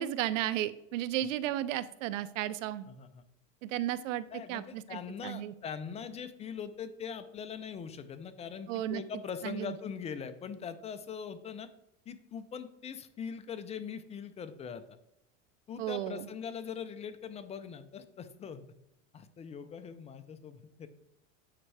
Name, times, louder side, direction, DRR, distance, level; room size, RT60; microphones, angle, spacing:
voice 1, 0.0-2.9 3.6-5.5 8.7-9.0 9.4-9.7 15.8-16.3, right 13 dB, 85° right, 16 dB, 0.6 m, -34 dB
voice 2, 2.9-3.2 4.3-11.7 12.1-14.8 15.7-18.6 19.1-20.9, left 7 dB, 20° left, 11 dB, 0.4 m, -42 dB
8.8 x 4.5 x 3.2 m, 0.84 s
supercardioid pair, 125°, 37 cm